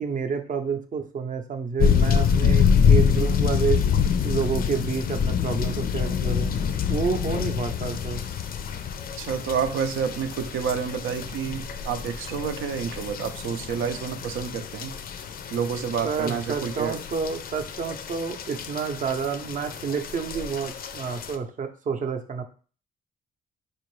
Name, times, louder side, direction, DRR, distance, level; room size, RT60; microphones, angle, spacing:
voice 1, 0.0-3.8 4.2-6.5 6.9-8.2 16.0-22.4, right 6 dB, 40° right, 6 dB, 0.6 m, -29 dB
sound 1, 1.8-21.3, left 7 dB, 50° left, 0.4 m, -26 dB
voice 2, 9.2-14.9 15.5-17.0, right 7 dB, 80° right, 8 dB, 0.6 m, -29 dB
4.4 x 2.5 x 3.1 m, 0.39 s
cardioid pair, 90°, 20 cm